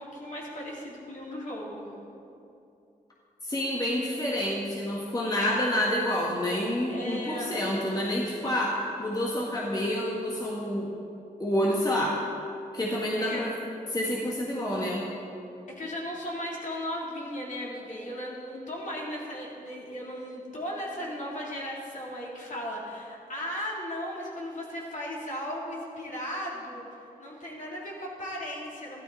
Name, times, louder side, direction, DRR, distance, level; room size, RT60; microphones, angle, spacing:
voice 1, 0.0-1.9 6.9-7.6 13.3-13.4 15.7-26.8 27.2-29.0, equal, 55° left, -4 dB, 3.4 m, -36 dB
voice 2, 3.4-10.9 11.4-12.2 12.7-13.5 13.9-15.0, left 1 dB, 25° left, -4 dB, 1.8 m, -28 dB
13.0 x 12.0 x 4.2 m, 2.7 s
cardioid pair, 65°, 16 cm